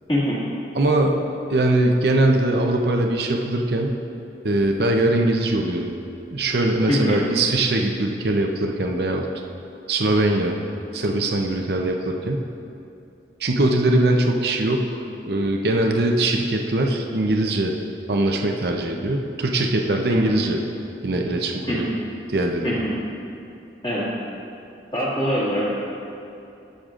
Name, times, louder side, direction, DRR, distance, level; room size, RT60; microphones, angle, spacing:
voice 1, 0.1-0.4 6.9-7.2 20.1-20.4 21.7-21.9 22.6-22.9 23.8-24.1 24.9-25.8, equal, 30° left, -7 dB, 2.0 m, -23 dB
voice 2, 0.7-1.2 1.5-4.0 4.4-5.9 6.3-9.3 9.9-10.6 10.9-12.4 13.4-15.0 15.3-17.7 18.1-20.6 21.0-21.9 22.3-22.8, right 2 dB, 65° right, 2 dB, 0.7 m, -21 dB
20.0 x 6.6 x 2.5 m, 2.7 s
head